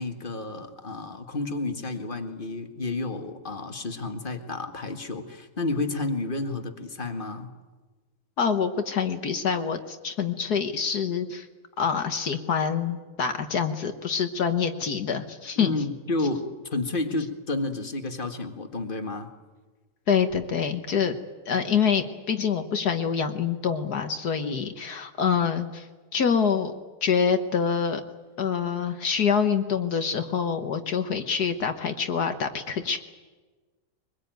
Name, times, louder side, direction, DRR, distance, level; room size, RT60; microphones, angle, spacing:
voice 1, 0.0-7.5 15.6-19.3 24.4-24.6, left 3 dB, 30° left, 6 dB, 2.0 m, -31 dB
voice 2, 8.4-11.5 11.8-15.7 20.1-21.2 21.5-25.9 26.1-26.7 27.0-28.0 28.4-33.0, left 6 dB, 65° left, 7 dB, 1.8 m, -26 dB
23.5 x 21.5 x 9.3 m, 1.3 s
omnidirectional pair, 1.9 m